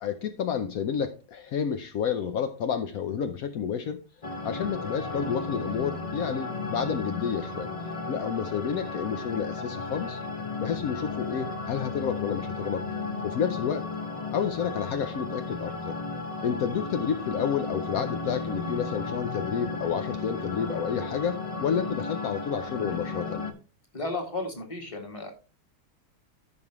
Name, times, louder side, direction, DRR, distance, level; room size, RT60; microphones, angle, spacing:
voice 1, 0.0-4.0 4.4-7.7 8.1-10.2 10.6-12.8 13.2-13.8 14.3-16.0 16.4-23.4, left 7 dB, 80° left, 8 dB, 0.8 m, -30 dB
sound 1, 4.2-23.5, left 3 dB, 65° left, 0.3 m, -34 dB
voice 2, 23.9-25.3, left 2 dB, 15° left, 3 dB, 1.6 m, -33 dB
14.0 x 5.3 x 3.0 m, 0.32 s
omnidirectional pair, 2.3 m